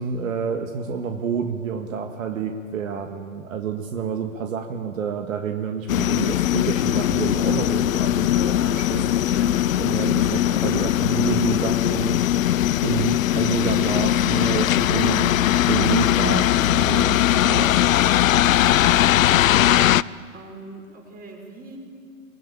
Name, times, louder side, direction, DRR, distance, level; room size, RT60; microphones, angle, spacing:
voice 1, 0.0-9.1 9.8-12.2 12.8-15.3 15.7-17.7, right 7 dB, 75° right, 5 dB, 1.8 m, -28 dB
sound 1, 5.9-20.0, left 12 dB, 75° left, 0.6 m, -20 dB
voice 2, 9.2-9.5 18.7-19.0 20.3-21.8, right 3 dB, 20° right, 1 dB, 5.4 m, -41 dB
23.0 x 20.0 x 8.8 m, 2.2 s
hypercardioid pair, 115°, 41 cm